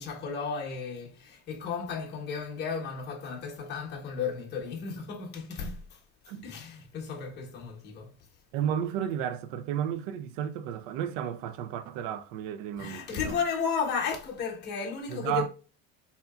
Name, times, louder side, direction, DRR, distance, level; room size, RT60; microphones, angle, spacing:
voice 1, 0.0-5.8 6.4-8.1 12.8-15.5, left 5 dB, 30° left, 0.9 m, -34 dB
voice 2, 8.5-13.4 15.1-15.5, right 9 dB, 65° right, 0.5 m, -33 dB
4.2 x 2.8 x 2.2 m
cardioid pair, 165°, 34 cm